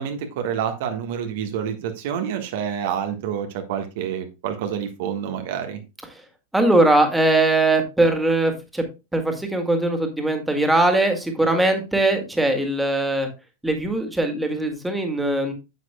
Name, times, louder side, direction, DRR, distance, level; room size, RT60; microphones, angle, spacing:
voice 1, 0.0-5.8, right 8 dB, 50° right, 6 dB, 1.4 m, -28 dB
voice 2, 6.5-8.8 9.1-13.3 13.6-15.5, right 2 dB, 5° right, 4 dB, 2.0 m, -20 dB
9.3 x 8.2 x 2.2 m, 0.27 s
figure-of-eight pair, 90°, 0 cm